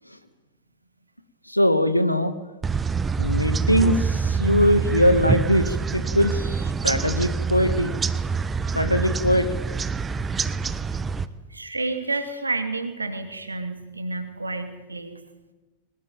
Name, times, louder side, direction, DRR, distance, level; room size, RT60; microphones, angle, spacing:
voice 1, 1.5-2.3 3.2-7.9 8.7-9.5, equal, 90° left, 11 dB, 1.8 m, -21 dB
sound 1, 2.6-11.3, right 5 dB, 15° right, 1.1 m, -26 dB
voice 2, 11.5-15.2, right 3 dB, 80° right, 8 dB, 2.5 m, -30 dB
22.0 x 19.5 x 9.1 m, 1.1 s
figure-of-eight pair, 90°, 0 cm